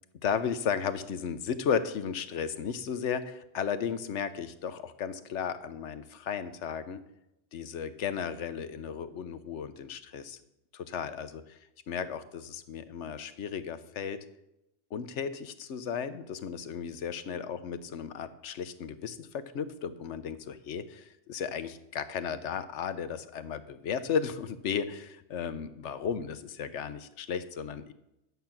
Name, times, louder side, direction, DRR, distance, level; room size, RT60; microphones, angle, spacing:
voice 1, 0.2-7.0 7.5-10.4 10.7-11.6 11.9-14.2 14.9-27.9, left 7 dB, 75° left, 12 dB, 1.1 m, -34 dB
11.0 x 8.0 x 5.8 m, 0.86 s
omnidirectional pair, 1.2 m